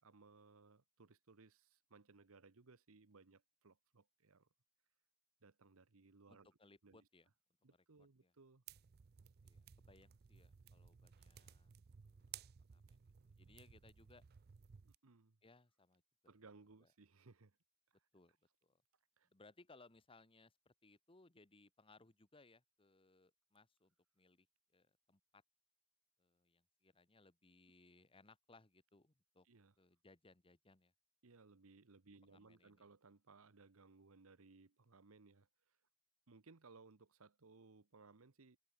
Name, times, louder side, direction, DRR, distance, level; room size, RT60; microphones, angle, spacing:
voice 1, 0.0-4.5 5.4-6.5 6.8-7.0 7.6-8.6 14.8-15.4 16.3-17.6 17.9-18.1 19.2-19.3 29.4-29.7 31.2-35.8 36.3-38.6, right 4 dB, 75° right, 1.0 m, -64 dB
voice 2, 6.3-7.3 7.7-7.8 8.2-8.3 9.4-11.7 12.0-12.4 12.7-14.2 15.4-16.0 16.8-16.9 18.1-18.3 18.6-18.8 19.2-24.5 24.7-25.4 26.2-29.5 29.8-30.9 32.3-32.8, left 3 dB, 25° left, 1.4 m, -67 dB
sound 1, 8.7-15.0, right 8 dB, 45° right, 0.5 m, -59 dB
head